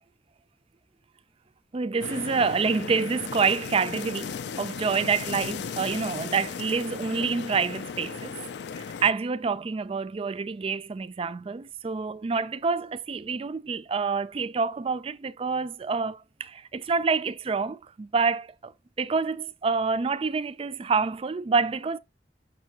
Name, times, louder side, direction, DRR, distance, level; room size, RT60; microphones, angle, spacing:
voice 1, 1.7-8.4 8.7-18.7 19.0-22.0, right 5 dB, 35° right, 0.4 m, -27 dB
sound 1, 2.0-9.1, left 6 dB, 70° left, 0.4 m, -36 dB
6.5 x 6.0 x 2.9 m
head